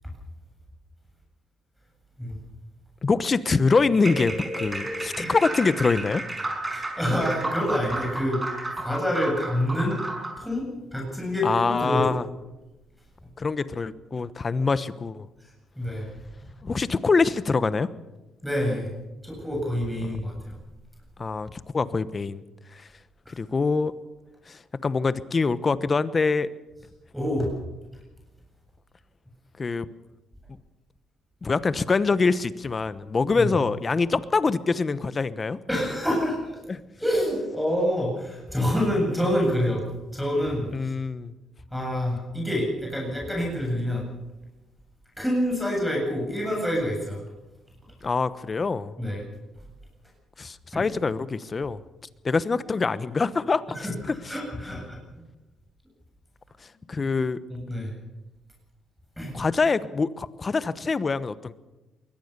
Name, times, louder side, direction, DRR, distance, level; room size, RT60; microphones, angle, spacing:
voice 1, 3.0-6.2 11.4-12.2 13.4-15.3 16.6-17.9 20.0-20.2 21.2-22.4 22.7-22.9 23.3-23.9 24.5-26.5 29.6-29.9 31.4-35.6 36.7-36.8 40.7-41.3 48.0-48.9 50.4-51.8 52.2-53.8 54.1-54.2 56.9-57.4 59.3-61.5, left 4 dB, 35° left, 15 dB, 1.1 m, -24 dB
sound 1, 3.9-10.4, right 2 dB, 20° right, 5.6 m, -32 dB
voice 2, 6.7-8.4 8.8-10.0 10.4-10.6 10.9-12.1 15.4-16.1 16.4-16.5 18.4-18.9 19.2-20.6 23.3-23.4 27.1-27.5 33.3-33.5 35.7-36.5 37.0-39.8 40.1-40.9 41.7-44.1 45.2-47.2 49.0-49.3 50.7-50.9 53.8-53.9 54.3-55.0 57.5-57.9 59.2-59.4, equal, ahead, -1 dB, 7.9 m, -27 dB
22.5 x 17.5 x 6.9 m, 1.1 s
cardioid pair, 90°, 0 cm